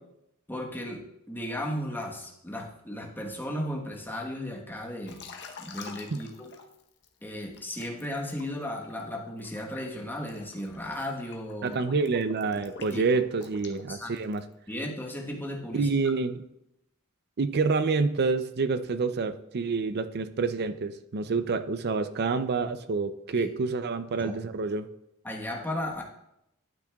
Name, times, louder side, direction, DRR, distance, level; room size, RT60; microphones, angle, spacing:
voice 1, 0.5-5.2 5.6-6.5 7.2-11.8 12.9-13.0 13.9-14.1 14.7-15.9 23.4-23.5 24.2-24.3 25.2-26.0, left 1 dB, 10° left, -1 dB, 1.2 m, -35 dB
Liquid, 5.1-7.1 7.5-14.5, left 5 dB, 55° left, 0.9 m, -47 dB
voice 2, 11.6-14.4 15.7-16.4 17.4-24.9, right 4 dB, 50° right, 11 dB, 0.5 m, -28 dB
12.0 x 8.9 x 2.3 m, 0.83 s
head